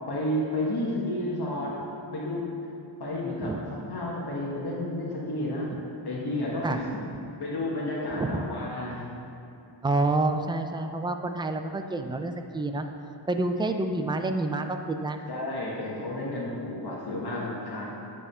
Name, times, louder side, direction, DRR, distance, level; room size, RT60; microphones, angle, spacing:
voice 1, 0.1-1.7 2.1-2.5 3.0-3.5 3.9-5.7 6.0-6.9 7.4-9.0 15.3-17.9, left 1 dB, 55° left, -5 dB, 1.3 m, -31 dB
voice 2, 9.8-12.9 13.3-15.2, right 2 dB, 10° right, 6 dB, 0.3 m, -28 dB
9.3 x 3.6 x 5.4 m, 2.7 s
wide cardioid pair, 100°, 46 cm